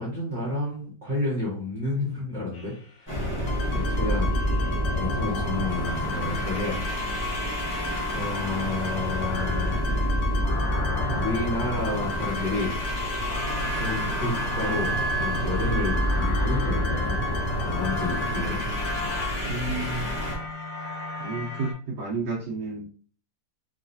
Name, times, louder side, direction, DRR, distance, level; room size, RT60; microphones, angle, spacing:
voice 1, 0.0-3.3 3.7-4.3 4.9-6.8 8.1-9.8 11.0-12.7 13.6-17.2 17.6-18.6, left 2 dB, 25° right, -7 dB, 1.3 m, -31 dB
sound 1, 2.5-3.3 4.3-5.1 5.8-21.7, equal, 80° left, 1.5 m, -36 dB
sound 2, 3.1-20.4, equal, 15° left, 0.8 m, -28 dB
sound 3, 3.5-19.3, left 5 dB, 55° left, 0.7 m, -35 dB
voice 2, 19.4-20.1 21.2-22.9, right 3 dB, 75° right, -5 dB, 1.4 m, -31 dB
3.1 x 3.1 x 2.6 m, 0.42 s
omnidirectional pair, 1.9 m